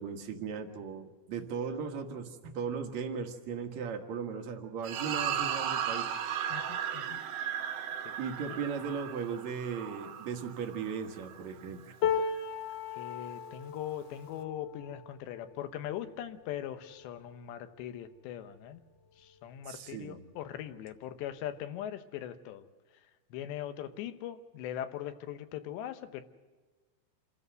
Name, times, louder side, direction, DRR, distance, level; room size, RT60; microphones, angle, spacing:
voice 1, 0.0-6.1 8.2-11.9 19.7-20.3, right 6 dB, 60° right, 5 dB, 2.0 m, -37 dB
sound 1, 4.8-11.4, right 9 dB, 75° right, 3.6 m, -36 dB
voice 2, 6.5-7.2 8.0-8.1 12.9-18.8 19.2-22.7 23.3-26.2, left 11 dB, 80° left, 9 dB, 3.2 m, -40 dB
sound 2, 12.0-18.2 18.7-18.9 19.2-20.0 21.0-21.1, left 7 dB, 65° left, 2.2 m, -37 dB
28.0 x 14.0 x 7.8 m, 1.4 s
omnidirectional pair, 5.1 m